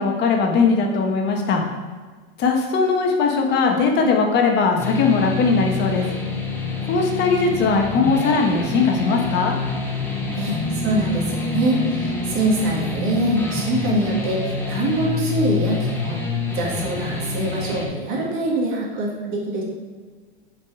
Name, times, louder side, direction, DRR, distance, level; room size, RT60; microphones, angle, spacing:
voice 1, 0.0-1.6 2.4-6.0 6.9-9.5, left 4 dB, 35° left, 2 dB, 1.3 m, -19 dB
sound 1, 4.8-17.9, left 4 dB, 5° left, 1.1 m, -27 dB
voice 2, 10.3-16.2 16.5-19.6, right 1 dB, 45° right, -2 dB, 2.1 m, -24 dB
5.7 x 5.1 x 4.8 m, 1.5 s
supercardioid pair, 125°, 29 cm